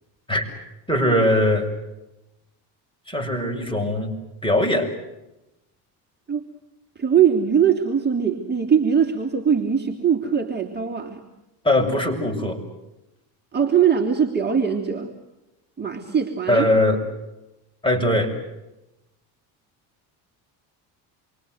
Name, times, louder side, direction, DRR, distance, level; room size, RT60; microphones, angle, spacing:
voice 1, 0.9-1.7 3.1-4.1 4.4-4.9 11.6-12.6 16.5-17.0 17.8-18.3, left 1 dB, 10° left, 3 dB, 7.0 m, -20 dB
voice 2, 7.0-11.2 13.5-15.1 15.8-16.7, right 7 dB, 25° right, 2 dB, 3.5 m, -21 dB
28.0 x 24.0 x 8.1 m, 0.94 s
supercardioid pair, 95°, 43 cm